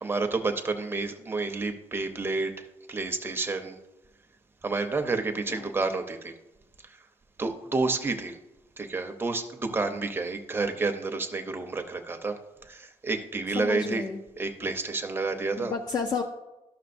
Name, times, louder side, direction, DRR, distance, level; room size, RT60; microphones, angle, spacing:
voice 1, 0.0-3.8 4.6-6.3 7.4-8.4 8.8-12.4 12.7-14.0 14.4-15.7, right 3 dB, 20° right, 6 dB, 0.7 m, -30 dB
voice 2, 13.6-14.2 15.6-16.2, left 5 dB, 35° left, 3 dB, 0.5 m, -31 dB
13.0 x 6.1 x 2.6 m, 0.98 s
wide cardioid pair, 170°, 12 cm